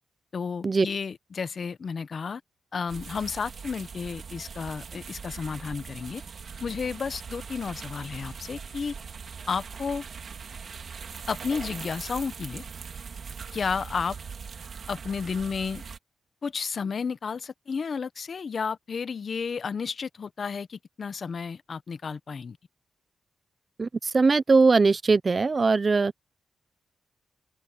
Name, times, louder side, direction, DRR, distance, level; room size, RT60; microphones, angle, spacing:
voice 1, 0.3-2.4 2.7-6.2 6.6-8.9 9.5-10.0 11.3-12.6 13.5-14.2 14.9-15.8 16.4-22.6, left 5 dB, 45° left, 0.7 m, -32 dB
sound 1, 2.9-16.0, right 6 dB, 50° right, 2.3 m, -41 dB
voice 2, 23.8-26.1, right 4 dB, 30° right, 0.4 m, -21 dB
wide cardioid pair, 150°, 0 cm